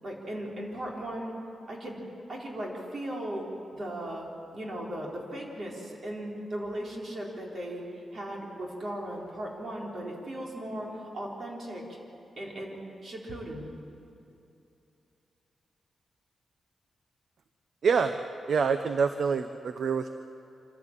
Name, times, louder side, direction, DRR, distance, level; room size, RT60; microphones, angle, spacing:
voice 1, 0.0-1.3 1.7-2.0 2.3-3.4 3.7-12.0 12.4-13.7, right 1 dB, 50° right, -2 dB, 4.2 m, -37 dB
voice 2, 17.8-18.2 18.5-20.1, right 5 dB, 65° right, 9 dB, 0.7 m, -26 dB
26.0 x 14.5 x 7.5 m, 2.7 s
wide cardioid pair, 115°, 0 cm